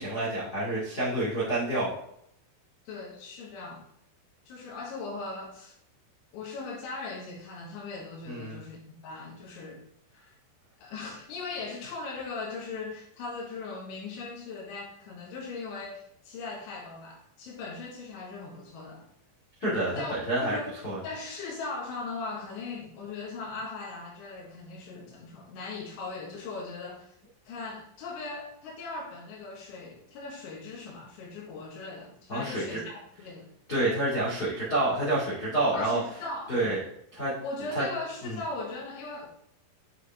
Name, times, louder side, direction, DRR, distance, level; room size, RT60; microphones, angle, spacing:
voice 1, 0.0-1.9 8.3-8.6 19.6-20.6 20.8-21.0 32.3-32.8 33.7-36.0 36.5-36.8 37.1-37.3 37.7-37.8 38.2-38.4, right 1 dB, 45° left, -9 dB, 1.2 m, -28 dB
voice 2, 2.9-3.9 4.5-5.8 6.3-9.8 10.1-10.3 10.8-19.1 20.0-20.2 20.4-20.8 21.0-27.2 27.5-33.5 35.7-36.7 37.4-39.3, left 3 dB, 70° left, -1 dB, 3.7 m, -39 dB
8.8 x 4.8 x 3.5 m, 0.74 s
omnidirectional pair, 6.0 m